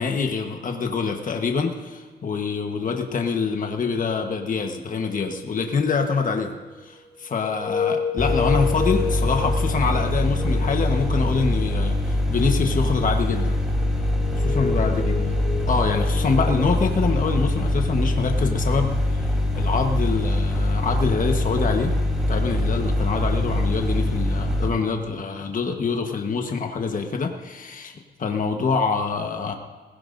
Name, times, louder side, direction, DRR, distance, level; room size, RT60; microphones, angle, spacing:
voice 1, 0.0-6.6 6.8-13.6 14.3-15.1 15.7-18.9 19.5-21.9 22.3-29.5, left 5 dB, 50° left, 3 dB, 1.3 m, -25 dB
sound 1, 5.1-6.2 7.4-12.2 13.1-13.2 13.4-16.7, left 6 dB, 25° left, 1.2 m, -32 dB
sound 2, 8.2-24.7, left 1 dB, 5° right, 3.4 m, -23 dB
20.0 x 16.5 x 2.6 m, 1.4 s
cardioid pair, 90°, 18 cm